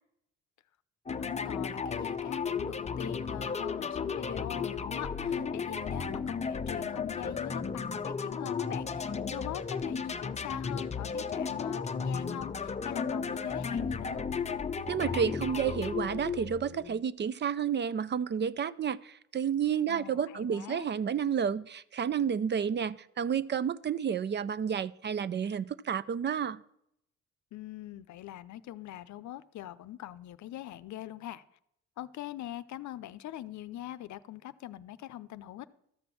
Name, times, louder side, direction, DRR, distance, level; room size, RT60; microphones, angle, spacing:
voice 1, 1.1-14.2 19.9-20.9 27.5-31.4 32.0-35.7, left 13 dB, 70° left, 15 dB, 0.6 m, -42 dB
sound 1, 1.1-17.0, left 5 dB, 20° left, 0.6 m, -34 dB
voice 2, 14.9-26.6, right 7 dB, 35° right, 18 dB, 0.4 m, -31 dB
13.0 x 6.0 x 7.0 m, 0.75 s
cardioid pair, 90°, 30 cm